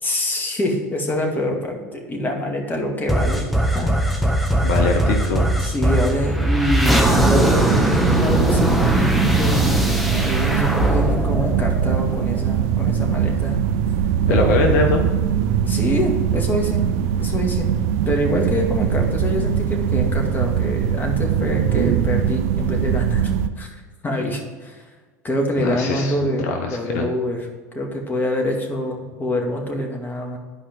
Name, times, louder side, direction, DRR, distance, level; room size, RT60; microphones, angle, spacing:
voice 1, 0.0-3.5 3.7-4.2 5.6-13.6 14.3-14.6 15.7-16.8 17.2-17.7 18.1-23.3 23.6-24.8 25.2-27.5 27.7-30.4, left 1 dB, 20° left, 1 dB, 2.2 m, -25 dB
sound 1, 3.1-12.4, equal, ahead, 1.2 m, -20 dB
voice 2, 4.6-5.5 14.3-15.1 25.6-27.1, left 3 dB, 60° left, 3 dB, 1.1 m, -22 dB
sound 2, 7.0-23.5, right 9 dB, 60° right, 0.6 m, -21 dB
11.5 x 5.0 x 4.5 m, 1.4 s
figure-of-eight pair, 80°, 9 cm